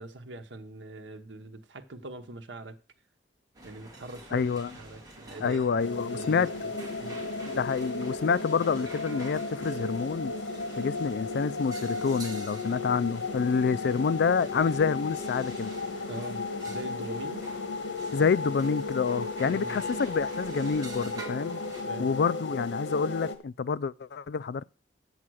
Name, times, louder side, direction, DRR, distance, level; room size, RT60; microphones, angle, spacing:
voice 1, 0.0-2.8 3.6-4.5 4.7-6.7 7.0-7.2 16.1-17.5 19.5-19.8 21.9-22.1, right 2 dB, 80° right, 1.0 m, -43 dB
sound 1, 3.5-21.8, right 2 dB, 20° right, 2.1 m, -48 dB
voice 2, 4.3-4.7 5.4-6.5 7.5-10.3 10.8-15.7 18.1-21.6 22.0-24.7, left 5 dB, 60° left, 0.4 m, -28 dB
sound 2, 5.8-23.4, left 3 dB, 85° left, 1.3 m, -35 dB
7.6 x 7.2 x 6.2 m
head